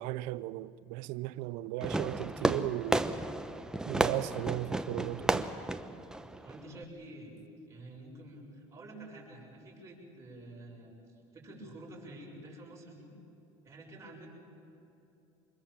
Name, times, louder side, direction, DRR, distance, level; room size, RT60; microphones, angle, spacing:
voice 1, 0.0-3.1 3.9-5.5, right 17 dB, 75° right, 0.6 m, -36 dB
Fireworks, 1.8-6.8, right 1 dB, 5° right, 0.9 m, -33 dB
voice 2, 6.4-7.3 7.7-10.9 11.3-13.1 13.6-14.3, right 1 dB, 25° right, 6.9 m, -49 dB
25.5 x 21.5 x 7.5 m
supercardioid pair, 120°, 12 cm